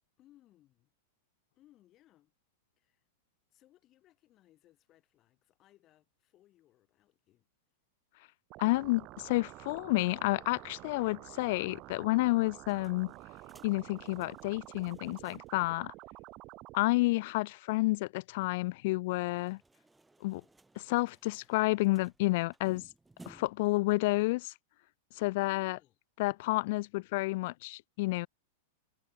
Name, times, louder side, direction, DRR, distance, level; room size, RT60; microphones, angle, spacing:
voice 1, 0.2-0.9 1.6-2.3 2.8-3.0 3.5-7.5 25.4-26.0, left 14 dB, 25° left, 3.9 m, -65 dB
sound 1, 8.5-16.8, right 21 dB, 30° right, 0.7 m, -50 dB
voice 2, 8.6-13.1 13.6-15.9 16.7-19.6 20.2-20.4 20.8-22.9 23.3-24.5 25.2-25.8 26.2-28.3, left 21 dB, 45° left, 0.4 m, -30 dB
sound 2, 12.4-15.7 16.0-16.1 16.3-16.4 19.2-23.7, right 2 dB, 5° right, 4.1 m, -60 dB
supercardioid pair, 170°, 0 cm